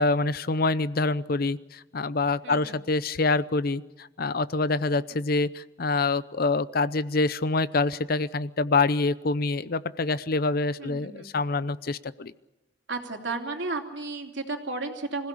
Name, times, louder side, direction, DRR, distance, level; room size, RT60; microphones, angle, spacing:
voice 1, 0.0-12.3, left 3 dB, 55° left, 16 dB, 0.7 m, -26 dB
voice 2, 2.4-2.8 5.1-5.2 10.8-11.3 12.9-15.3, right 3 dB, 70° right, 2 dB, 3.1 m, -33 dB
26.0 x 16.0 x 8.4 m, 1.0 s
head